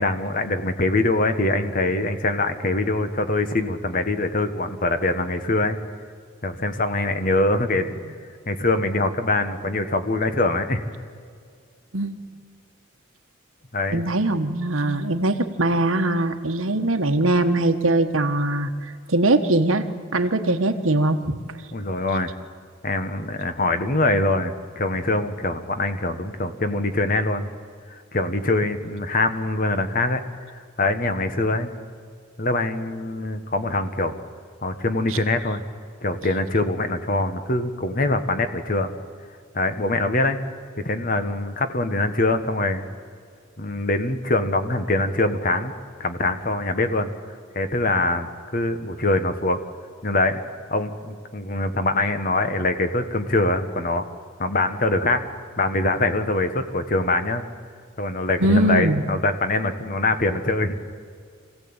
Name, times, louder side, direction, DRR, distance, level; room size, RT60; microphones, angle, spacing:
voice 1, 0.0-5.8 6.4-7.9 8.5-10.8 13.7-14.0 21.7-22.3 22.8-27.5 27.9-30.2 30.5-31.7 32.4-34.1 34.6-35.6 36.0-38.9 39.5-40.4 40.8-42.8 43.6-45.7 46.0-47.1 47.5-49.6 50.0-50.4 50.7-54.0 54.4-55.2 55.6-57.4 58.0-60.7, left 2 dB, 45° left, 9 dB, 1.4 m, -23 dB
voice 2, 13.9-18.7 19.1-19.9 20.1-21.3 58.4-59.0, right 2 dB, 85° right, 7 dB, 1.4 m, -21 dB
25.5 x 16.5 x 8.9 m, 2.2 s
head